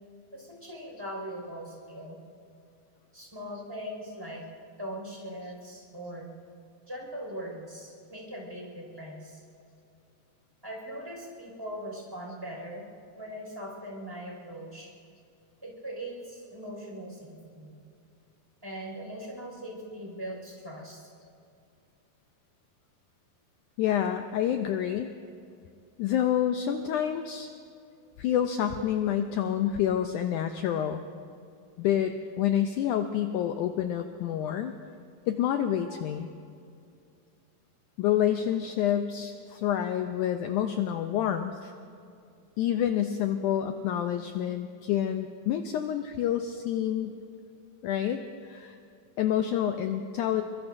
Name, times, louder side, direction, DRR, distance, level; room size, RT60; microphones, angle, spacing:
voice 1, 0.3-2.2 3.1-4.4 4.8-6.3 6.9-9.4 10.6-12.8 13.2-14.9 15.6-17.7 18.6-21.0 46.6-46.7 47.0-47.2, equal, 5° right, -2 dB, 5.0 m, -40 dB
voice 2, 23.8-25.1 26.0-27.5 28.2-31.1 31.8-34.7 35.3-36.3 38.0-41.7 42.6-47.1 47.8-48.8 49.2-50.4, left 10 dB, 85° left, 7 dB, 1.8 m, -28 dB
24.0 x 23.0 x 2.6 m, 2.5 s
omnidirectional pair, 4.2 m